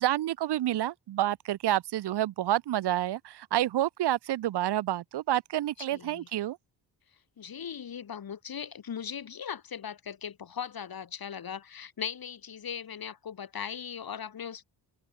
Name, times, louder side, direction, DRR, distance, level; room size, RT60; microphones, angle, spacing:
voice 1, 0.0-6.6, right 13 dB, 65° right, 0.9 m, -29 dB
voice 2, 5.9-6.3 7.4-14.6, left 8 dB, 55° left, 3.4 m, -39 dB
cardioid pair, 70°, 43 cm